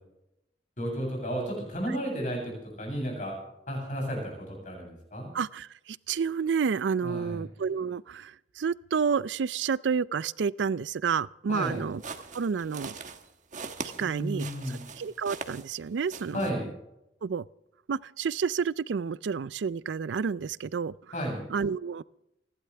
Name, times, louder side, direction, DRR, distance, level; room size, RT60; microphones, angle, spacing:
voice 1, 0.8-3.4 3.7-5.3 7.0-7.4 11.5-11.8 14.0-14.8 16.3-16.7 21.1-21.4, equal, 45° left, 7.9 m, -33 dB
voice 2, 5.3-12.0 12.3-13.0 14.0-14.5 15.0-16.5 17.2-17.4 17.9-20.9 21.5-22.0, right 6 dB, 80° right, 0.4 m, -30 dB
sound 1, 11.6-15.8 16.1-16.5, right 4 dB, 45° right, 1.3 m, -41 dB
29.0 x 12.0 x 3.4 m
head